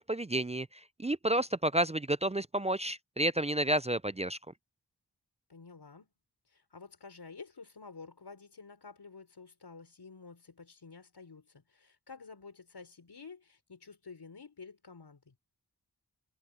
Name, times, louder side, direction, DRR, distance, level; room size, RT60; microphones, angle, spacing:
voice 1, 0.0-4.4, right 1 dB, 15° right, 0.4 m, -31 dB
voice 2, 5.5-6.1 6.5-15.3, left 4 dB, 90° left, 5.8 m, -51 dB
wide cardioid pair, 50°, 39 cm